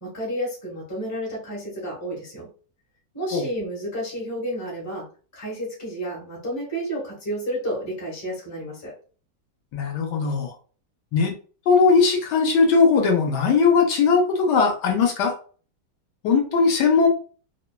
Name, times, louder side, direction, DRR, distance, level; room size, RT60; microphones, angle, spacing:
voice 1, 0.0-2.5 3.1-5.1 5.3-8.9, equal, 15° left, -3 dB, 0.7 m, -31 dB
voice 2, 9.7-10.5 11.1-11.3 11.7-15.3 16.2-17.1, left 5 dB, 75° left, 2 dB, 1.2 m, -19 dB
2.9 x 2.1 x 2.2 m, 0.39 s
omnidirectional pair, 1.9 m